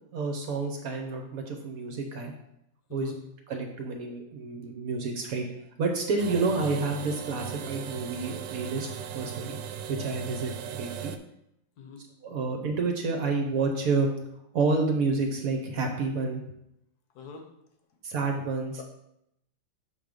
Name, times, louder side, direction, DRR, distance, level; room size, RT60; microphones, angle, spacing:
voice 1, 0.1-2.3 2.9-3.1 3.5-5.5 5.8-8.9 9.1-9.6 9.9-11.1 12.2-14.1 14.5-16.4 18.0-18.8, right 3 dB, 60° right, 3 dB, 1.1 m, -29 dB
long drawn out, 6.2-11.2, right 9 dB, 80° right, 1.2 m, -38 dB
voice 2, 17.1-17.5 18.8-18.9, left 5 dB, 65° left, 4 dB, 1.4 m, -43 dB
6.4 x 3.5 x 5.1 m, 0.80 s
omnidirectional pair, 1.9 m